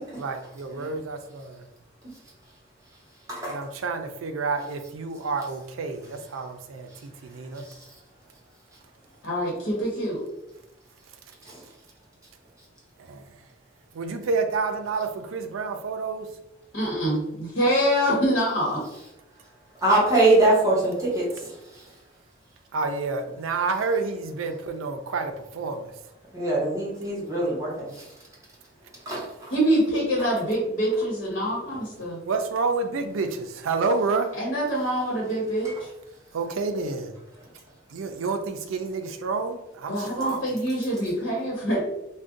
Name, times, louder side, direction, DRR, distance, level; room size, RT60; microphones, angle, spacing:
voice 1, 0.2-1.6 3.5-7.6 13.1-13.3 13.9-16.3 22.7-25.9 32.3-34.3 36.3-37.1 37.9-40.5, right 4 dB, 85° right, 6 dB, 0.4 m, -29 dB
voice 2, 7.5-7.9 11.4-11.6 19.8-21.8 26.3-27.9 29.1-29.5 31.7-31.8 35.6-35.7, right 2 dB, 15° right, -6 dB, 1.0 m, -23 dB
voice 3, 9.2-10.2 16.7-18.8 29.5-32.2 34.4-35.9 39.9-41.8, equal, 65° left, -4 dB, 1.0 m, -25 dB
2.5 x 2.2 x 3.6 m, 0.88 s
head